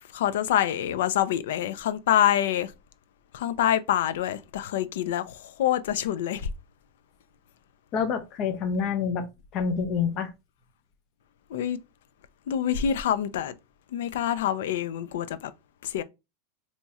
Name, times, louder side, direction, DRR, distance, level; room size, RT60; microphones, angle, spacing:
voice 1, 0.1-2.7 3.3-6.5 11.5-11.8 12.5-13.5 13.9-15.5 15.8-16.0, left 10 dB, 75° left, 0.4 m, -26 dB
voice 2, 7.9-9.3 9.5-10.3, left 6 dB, 35° left, 0.7 m, -27 dB
2.9 x 2.3 x 4.1 m
supercardioid pair, 165°, 0 cm